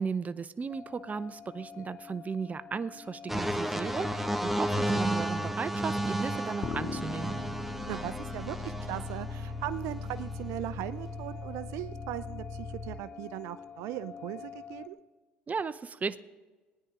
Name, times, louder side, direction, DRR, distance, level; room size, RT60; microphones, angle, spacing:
voice 1, 0.0-7.3 15.5-16.2, right 5 dB, 30° right, 14 dB, 0.6 m, -35 dB
sound 1, 0.7-14.9, left 6 dB, 30° left, 0.8 m, -48 dB
sound 2, 3.3-9.3 10.1-10.3, right 1 dB, 5° right, 0.9 m, -32 dB
sound 3, 6.6-12.9, left 4 dB, 55° left, 1.7 m, -39 dB
voice 2, 7.9-15.0, right 14 dB, 75° right, 13 dB, 0.5 m, -38 dB
19.0 x 9.9 x 3.7 m, 1.2 s
supercardioid pair, 75°, 5 cm